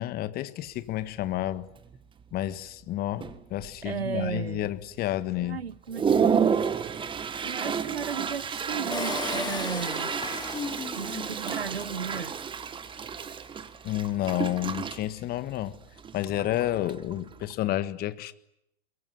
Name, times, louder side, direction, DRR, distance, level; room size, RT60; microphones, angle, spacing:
voice 1, 0.0-1.7 2.3-5.6 13.8-15.8 16.1-18.3, left 14 dB, 30° left, 1.6 m, -30 dB
Toilet flush, 0.6-0.7 1.2-1.5 1.8-2.3 2.8-2.9 3.2-4.0 4.4-4.5 5.1-5.2 5.6-17.5, right 7 dB, 15° right, 1.6 m, -31 dB
voice 2, 3.8-4.7 5.4-6.5 7.4-10.1 10.9-12.3, right 6 dB, 85° right, 1.0 m, -35 dB
Engine, 8.9-12.4 12.8-12.9 13.1-13.2, left 5 dB, 15° left, 2.1 m, -36 dB
23.5 x 22.5 x 9.9 m
figure-of-eight pair, 105°, 30 cm